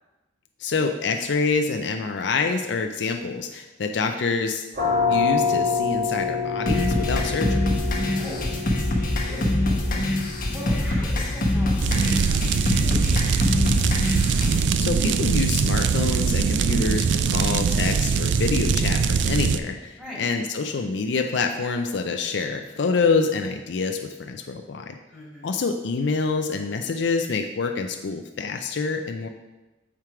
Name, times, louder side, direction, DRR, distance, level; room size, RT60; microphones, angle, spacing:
voice 1, 0.6-4.7 5.1-7.7 14.8-25.0 25.4-29.3, left 4 dB, 65° left, 5 dB, 0.4 m, -26 dB
sound 1, 4.7-16.2, left 4 dB, 45° right, 1.5 m, -29 dB
sound 2, 6.7-14.6, left 1 dB, 45° left, 1.0 m, -24 dB
voice 2, 8.1-10.0 10.5-13.2 13.5-13.6 20.0-20.2 25.1-25.5, equal, 5° right, -8 dB, 2.6 m, -40 dB
sound 3, 11.8-19.6, right 5 dB, 65° right, 0.3 m, -22 dB
7.3 x 4.5 x 4.8 m, 1.1 s
head